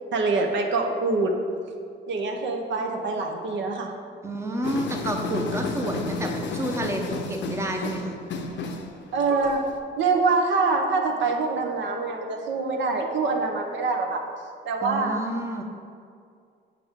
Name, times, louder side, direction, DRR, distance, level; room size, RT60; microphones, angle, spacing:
voice 1, 0.1-1.4 2.1-3.9 9.1-9.6 10.0-14.2 14.7-15.2, right 3 dB, 70° right, 2 dB, 0.7 m, -25 dB
voice 2, 4.2-8.2 14.8-15.6, right 1 dB, 15° right, 2 dB, 0.7 m, -30 dB
sound 1, 4.6-9.8, left 3 dB, 65° left, 0.6 m, -32 dB
7.0 x 4.9 x 3.6 m, 2.3 s
cardioid pair, 90°, 20 cm